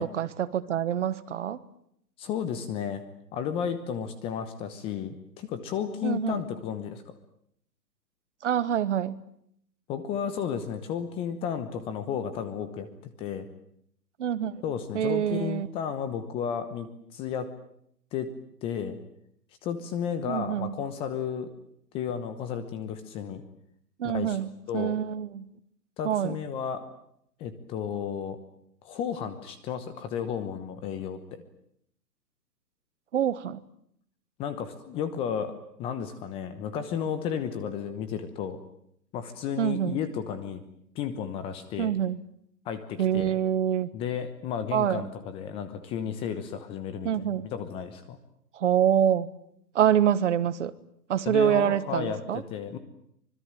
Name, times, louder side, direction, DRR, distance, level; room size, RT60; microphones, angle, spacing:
voice 1, 0.0-1.6 6.0-6.4 8.4-9.2 14.2-14.6 14.9-15.7 20.3-20.8 24.0-25.5 26.0-26.4 33.1-33.6 39.6-40.0 41.8-42.2 43.0-43.9 44.7-45.1 47.0-47.5 48.5-49.3 49.7-50.7 51.1-52.4, right 9 dB, 45° right, 16 dB, 1.5 m, -26 dB
voice 2, 2.2-3.0 3.3-7.1 9.9-13.5 14.6-17.5 18.1-18.3 18.6-19.0 19.6-21.5 21.9-23.4 24.0-24.4 24.7-24.9 26.0-26.9 27.4-28.4 28.8-31.4 34.4-35.5 35.8-38.6 39.1-40.6 40.9-41.9 42.6-43.4 43.9-48.2 51.2-52.8, left 8 dB, 10° left, 12 dB, 1.0 m, -33 dB
25.0 x 21.5 x 9.0 m, 0.72 s
hypercardioid pair, 150°, 50 cm